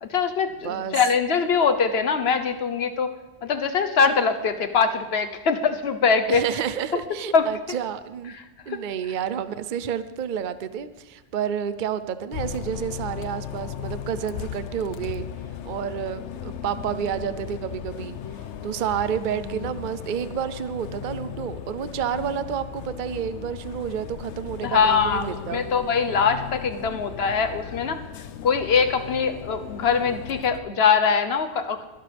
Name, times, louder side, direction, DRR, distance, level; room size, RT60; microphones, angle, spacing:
voice 1, 0.0-3.1 3.4-6.4 7.3-7.4 8.7-8.8 24.6-28.0 28.4-31.8, left 6 dB, 65° left, 9 dB, 1.2 m, -22 dB
voice 2, 0.6-1.0 6.3-8.3 8.7-15.2 15.6-18.2 18.6-25.6, right 8 dB, 50° right, 13 dB, 0.7 m, -30 dB
Bus, 12.3-30.6, left 9 dB, 80° left, 1.0 m, -36 dB
22.5 x 11.5 x 3.4 m, 1.2 s
omnidirectional pair, 1.2 m